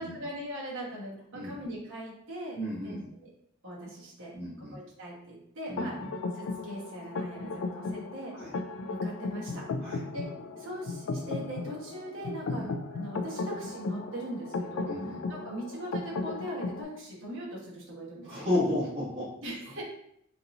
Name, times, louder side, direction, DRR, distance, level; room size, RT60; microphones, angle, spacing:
voice 1, 0.0-3.3 3.6-4.3 4.6-6.0 6.3-8.3 8.9-9.6 10.1-10.3 10.6-14.9 15.3-18.5 19.4-19.8, right 1 dB, 60° right, -5 dB, 1.3 m, -40 dB
voice 2, 2.5-3.0 4.3-4.8 5.7-6.1 8.3-8.5 9.8-10.0 12.5-12.6 14.8-15.2 18.2-19.3, left 1 dB, 30° right, -13 dB, 1.4 m, -32 dB
sound 1, 5.8-16.8, left 3 dB, 70° left, 0.3 m, -36 dB
3.9 x 2.6 x 2.8 m, 0.71 s
head